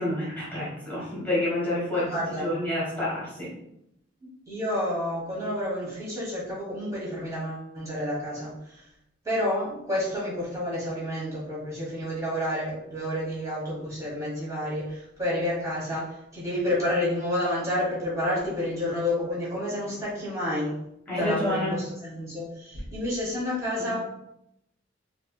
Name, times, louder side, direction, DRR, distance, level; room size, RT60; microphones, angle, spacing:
voice 1, 0.0-3.5 21.1-21.7 23.8-23.9, left 1 dB, 10° left, -8 dB, 1.3 m, -29 dB
voice 2, 1.9-2.5 4.5-8.8 9.2-20.7 21.1-24.0, left 1 dB, 15° right, -7 dB, 1.3 m, -30 dB
4.5 x 2.8 x 2.3 m, 0.80 s
head